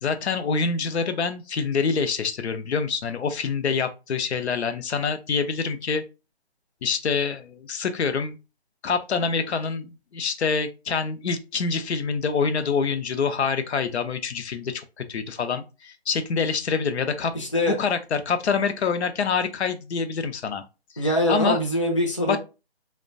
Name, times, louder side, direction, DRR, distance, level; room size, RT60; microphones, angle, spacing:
voice 1, 0.0-6.0 6.8-8.4 8.8-17.3 17.7-20.6 21.0-21.6 22.3-22.4, left 5 dB, 90° left, 0.5 m, -26 dB
voice 2, 17.3-17.7 21.0-22.4, equal, 30° left, 0.4 m, -23 dB
2.4 x 2.1 x 2.4 m
hypercardioid pair, 170°, 32 cm